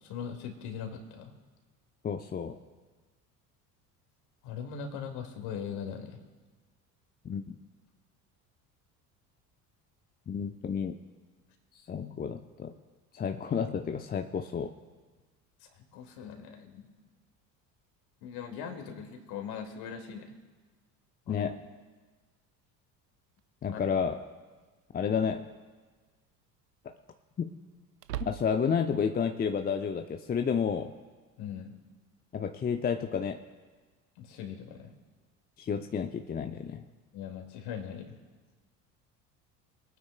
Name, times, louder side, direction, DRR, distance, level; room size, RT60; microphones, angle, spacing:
voice 1, 0.0-1.3 4.4-6.2 15.6-16.9 18.2-20.3 21.3-21.5 23.7-23.8 31.4-31.7 34.2-34.9 37.1-38.2, left 7 dB, 50° left, 4 dB, 2.3 m, -40 dB
voice 2, 2.0-2.6 7.2-7.6 10.3-10.9 11.9-12.7 13.1-14.7 21.3-21.6 23.6-24.2 24.9-25.5 26.8-26.9 27.4-27.5 28.2-30.9 32.3-33.4 35.6-36.8, left 6 dB, 20° left, 7 dB, 0.7 m, -31 dB
sound 1, 23.4-23.5 25.3-25.7 26.1-26.2 28.0-28.9, right 14 dB, 80° right, 0.5 m, -40 dB
25.5 x 9.3 x 2.3 m, 1.4 s
figure-of-eight pair, 60°, 48 cm